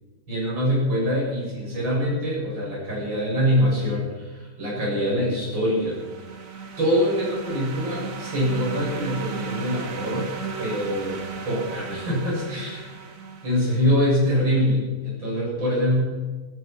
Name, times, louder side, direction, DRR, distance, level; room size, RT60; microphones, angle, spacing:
voice 1, 0.3-6.0 6.8-10.3 10.6-12.9 13.4-16.0, equal, 70° right, -5 dB, 8.0 m, -24 dB
sound 1, 5.5-14.1, right 6 dB, 45° right, 1.7 m, -36 dB
17.5 x 17.5 x 4.5 m, 1.3 s
omnidirectional pair, 2.2 m